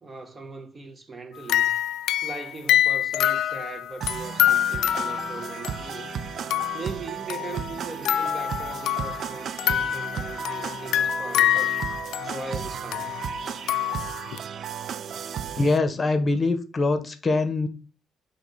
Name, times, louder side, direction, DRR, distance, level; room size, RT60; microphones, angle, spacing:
voice 1, 0.0-1.8 2.2-6.1 6.7-11.8 12.2-13.1, right 3 dB, 30° right, 1.0 m, -39 dB
sound 1, 1.4-6.9 7.3-9.3 9.6-14.4, left 11 dB, 85° left, 0.3 m, -26 dB
sound 2, 4.0-15.8, right 7 dB, 60° right, 0.3 m, -35 dB
voice 2, 15.6-17.7, left 3 dB, 35° left, 0.8 m, -23 dB
6.1 x 2.9 x 5.4 m
cardioid pair, 90°, 0 cm